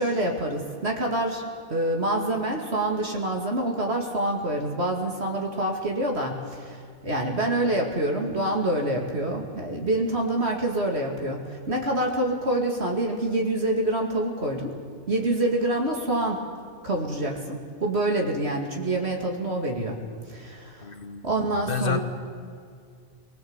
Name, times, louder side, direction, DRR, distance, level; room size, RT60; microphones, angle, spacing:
voice 1, 0.0-14.7 15.1-16.5 16.8-20.0 20.3-20.9 21.2-22.0, right 1 dB, 60° right, 1 dB, 2.6 m, -26 dB
voice 2, 20.8-22.0, left 6 dB, 45° left, 7 dB, 1.5 m, -31 dB
22.0 x 19.5 x 8.1 m, 2.2 s
omnidirectional pair, 1.3 m